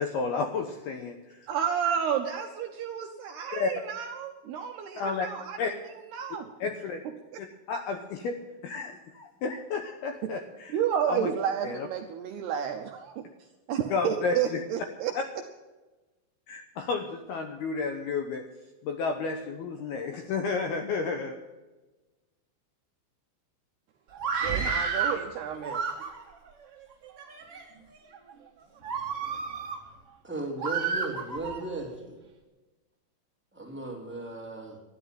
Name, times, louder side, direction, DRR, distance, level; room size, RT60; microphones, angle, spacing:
voice 1, 0.0-1.5 3.5-3.7 5.0-5.3 5.6-5.7 6.6-7.0 7.4-10.8 11.1-11.3 11.6-11.9 13.9-14.6 15.2-15.3 16.5-18.5 18.8-21.4, left 4 dB, 75° left, 5 dB, 2.4 m, -32 dB
voice 2, 1.5-5.8 6.1-6.5 7.3-7.4 10.7-13.2 13.7-15.1 24.4-25.8, right 8 dB, 75° right, 4 dB, 2.4 m, -31 dB
Screaming, 24.1-25.2 25.6-26.4 27.0-27.6 28.1-28.3 28.8-29.8 30.6-31.6, right 5 dB, 45° right, 2.1 m, -31 dB
voice 3, 30.2-32.2 33.5-34.8, right 2 dB, 5° right, -2 dB, 1.6 m, -36 dB
13.0 x 10.5 x 9.1 m, 1.2 s
omnidirectional pair, 5.6 m